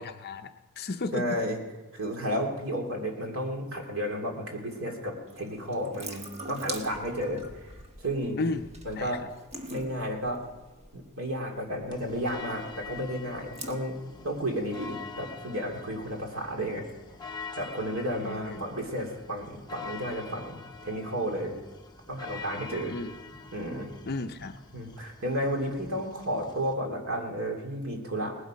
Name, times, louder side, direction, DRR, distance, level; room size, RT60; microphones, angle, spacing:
voice 1, 0.0-1.4 8.4-8.7 9.0-9.2 18.2-18.6 22.8-23.2 24.0-24.6 26.0-26.1, left 3 dB, 45° left, 7 dB, 0.6 m, -34 dB
voice 2, 1.1-1.6 1.9-6.2 6.5-7.7 8.0-8.4 8.8-9.2 9.7-10.4 10.9-14.0 14.2-16.9 17.5-21.5 22.1-22.9 23.5-23.9 24.7-28.4, equal, 65° right, 1 dB, 2.9 m, -32 dB
Water tap faucet / Sink (filling or washing) / Drip, 5.3-15.1, right 1 dB, 30° right, 1.4 m, -45 dB
sound 1, 11.9-26.7, left 4 dB, 20° left, 0.9 m, -45 dB
19.0 x 12.0 x 5.2 m, 1.1 s
head